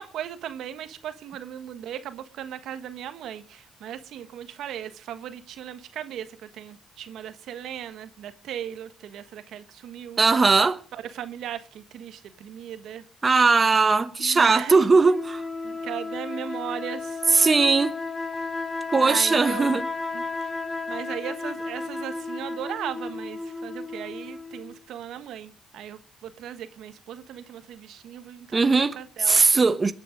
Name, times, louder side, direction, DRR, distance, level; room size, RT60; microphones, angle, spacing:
voice 1, 0.0-10.2 10.9-13.0 14.2-14.8 15.6-17.2 19.0-19.8 20.1-20.2 20.9-29.4, right 10 dB, 80° right, 1.3 m, -37 dB
voice 2, 10.2-10.8 13.2-15.4 17.3-18.0 18.9-19.8 28.5-29.9, right 4 dB, 30° right, 1.1 m, -19 dB
sound 1, 15.1-24.8, left 3 dB, 20° left, 2.1 m, -33 dB
22.5 x 9.1 x 5.2 m
cardioid pair, 90°, 0 cm